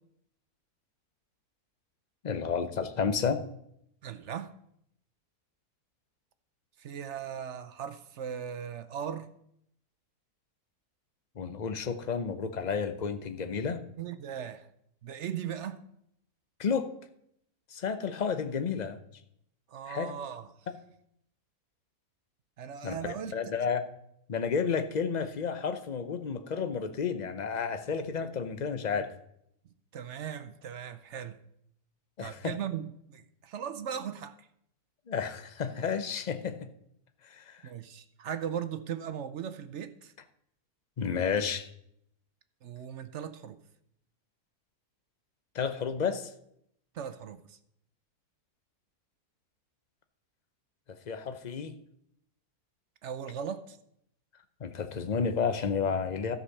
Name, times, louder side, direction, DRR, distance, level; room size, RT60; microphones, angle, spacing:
voice 1, 2.2-3.4 11.4-13.8 16.6-16.9 17.7-19.0 19.9-20.1 22.8-23.8 24.3-29.1 32.2-32.5 35.1-36.7 37.2-37.6 41.0-41.7 45.5-46.3 51.1-51.8 54.6-56.4, left 6 dB, 45° left, 9 dB, 0.5 m, -31 dB
voice 2, 4.0-4.5 6.8-9.3 14.0-14.7 15.0-15.8 19.7-20.5 22.6-23.3 29.9-31.4 32.2-34.5 37.6-40.1 42.6-43.6 46.9-47.6 53.0-53.8, right 8 dB, 60° right, 11 dB, 0.8 m, -38 dB
13.0 x 5.3 x 6.5 m, 0.74 s
omnidirectional pair, 1.7 m